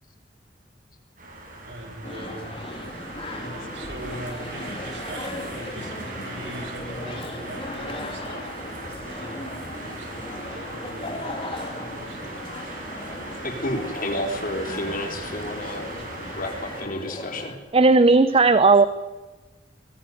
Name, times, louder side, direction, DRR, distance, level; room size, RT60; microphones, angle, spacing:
sound 1, 1.2-16.8, right 2 dB, 50° right, 7.5 m, -38 dB
voice 1, 1.7-2.9 3.3-8.5 9.0-9.4 9.7-12.6, right 1 dB, 90° right, 4 dB, 4.5 m, -41 dB
sound 2, 2.0-17.6, left 1 dB, 30° left, 3.0 m, -37 dB
voice 2, 13.4-15.9 16.3-17.5, left 1 dB, 50° left, 4 dB, 4.0 m, -30 dB
voice 3, 17.7-18.9, right 3 dB, 35° right, 13 dB, 0.7 m, -15 dB
21.5 x 15.0 x 9.4 m, 1.3 s
head